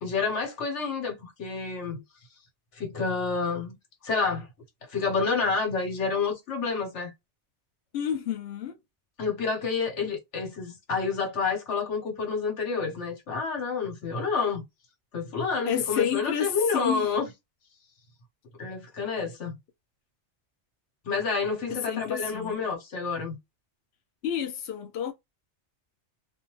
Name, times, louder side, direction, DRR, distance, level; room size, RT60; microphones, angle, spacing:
voice 1, 0.0-2.0 2.7-3.8 4.0-4.5 4.9-7.1 9.2-14.6 15.1-17.3 18.6-19.6 21.0-23.4, left 4 dB, 85° left, 1.3 m, -29 dB
voice 2, 7.9-8.8 15.7-17.1 21.7-22.6 24.2-25.1, left 9 dB, 70° left, 0.8 m, -30 dB
2.6 x 2.2 x 2.9 m
omnidirectional pair, 1.2 m